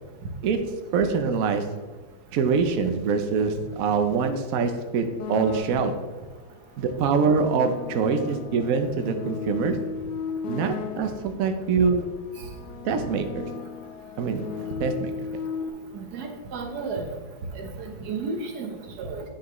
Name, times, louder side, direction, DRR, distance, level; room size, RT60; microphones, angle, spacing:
voice 1, 0.9-1.6 2.3-5.9 6.8-9.8 10.5-12.0 12.8-13.5 14.2-15.4, right 5 dB, 85° right, 6 dB, 0.7 m, -24 dB
sound 1, 5.2-6.3 7.0-11.5 12.3-15.7, left 6 dB, 80° left, 0.9 m, -35 dB
voice 2, 15.9-17.1 17.5-19.2, right 4 dB, 55° right, 3 dB, 1.4 m, -33 dB
9.4 x 6.8 x 3.1 m, 1.3 s
omnidirectional pair, 2.3 m